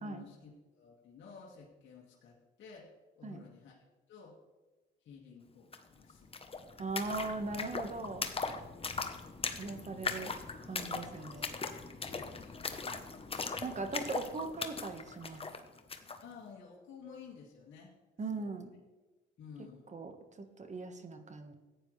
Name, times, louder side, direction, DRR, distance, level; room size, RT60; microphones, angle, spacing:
voice 1, 0.0-2.9 3.2-3.8 4.1-4.3 5.0-6.3 12.1-13.0 16.2-17.9 18.3-18.5 19.4-20.0, left 5 dB, 70° left, -4 dB, 2.1 m, -53 dB
sound 1, 5.7-5.8 6.0-16.2, left 4 dB, 30° left, 1.0 m, -40 dB
voice 2, 6.8-8.3 9.6-10.3 10.6-11.5 13.6-15.4 18.2-18.7 19.9-21.5, right 3 dB, 35° right, 7 dB, 1.4 m, -39 dB
14.5 x 9.5 x 3.3 m, 1.2 s
cardioid pair, 90°, 20 cm